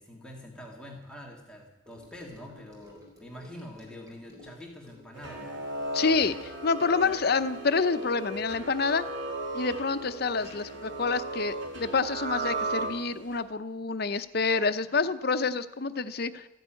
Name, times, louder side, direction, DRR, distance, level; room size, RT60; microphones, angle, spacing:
voice 1, 0.0-5.6 14.9-15.0, left 1 dB, 5° left, -1 dB, 2.1 m, -45 dB
Gurgling / Sink (filling or washing) / Trickle dribble, 1.9-13.5 13.8-14.1 14.4-14.5, left 1 dB, 20° right, 4.3 m, -56 dB
sound 1, 5.1-13.4, right 2 dB, 90° right, 3.3 m, -36 dB
voice 2, 5.9-9.0 9.5-16.5, left 4 dB, 55° left, 10 dB, 0.8 m, -28 dB
14.5 x 11.0 x 9.1 m, 0.96 s
head